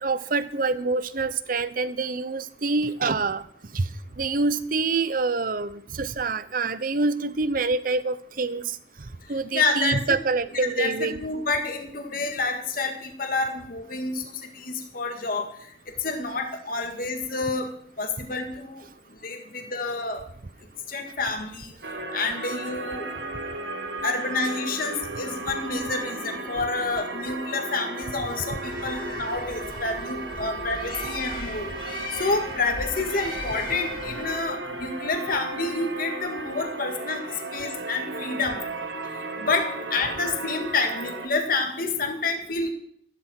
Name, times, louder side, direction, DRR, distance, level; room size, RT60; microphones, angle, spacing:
voice 1, 0.0-3.4 3.7-3.8 4.2-8.7 9.3-11.2, right 3 dB, 50° right, 15 dB, 0.8 m, -26 dB
voice 2, 9.5-10.0 10.5-15.5 16.0-17.7 18.0-18.8 19.2-20.2 20.9-21.7 22.1-23.1 24.0-31.7 32.1-37.2 37.5-38.6 39.4-42.7, left 3 dB, 55° left, 4 dB, 2.1 m, -28 dB
sound 1, 21.8-41.3, right 2 dB, 80° right, 1.8 m, -35 dB
Bird, 28.5-34.5, left 2 dB, 25° left, 3.8 m, -38 dB
14.0 x 12.5 x 4.5 m, 0.63 s
head